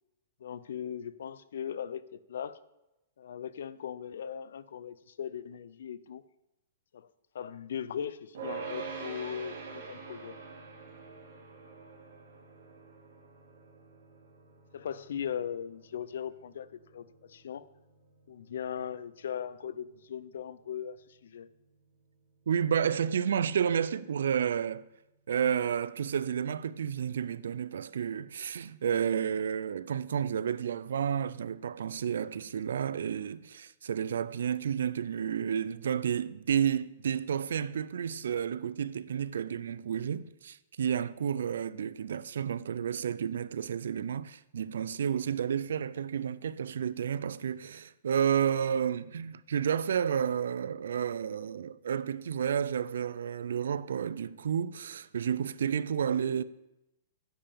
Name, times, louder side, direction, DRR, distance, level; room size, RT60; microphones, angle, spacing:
voice 1, 0.4-2.6 3.2-6.2 6.9-7.1 7.3-10.3 14.7-17.7 18.3-21.5, left 8 dB, 75° left, 0.5 m, -39 dB
sound 1, 8.3-19.7, right 5 dB, 65° right, 3.0 m, -46 dB
voice 2, 22.5-24.9 25.3-56.4, right 8 dB, 85° right, 0.4 m, -31 dB
10.0 x 5.6 x 6.9 m
hypercardioid pair, 175°, 0 cm